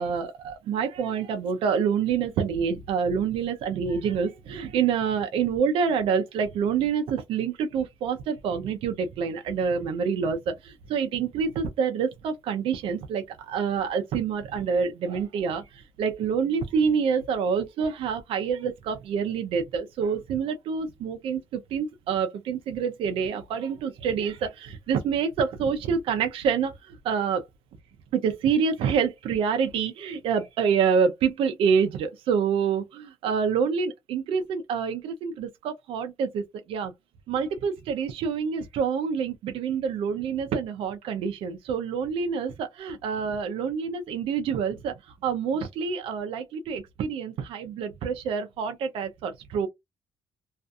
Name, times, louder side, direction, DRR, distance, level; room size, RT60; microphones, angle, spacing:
voice 1, 0.0-27.4 28.1-36.9 37.3-49.7, right 6 dB, 80° right, 0.4 m, -27 dB
2.6 x 2.4 x 2.3 m
cardioid pair, 150°, 9 cm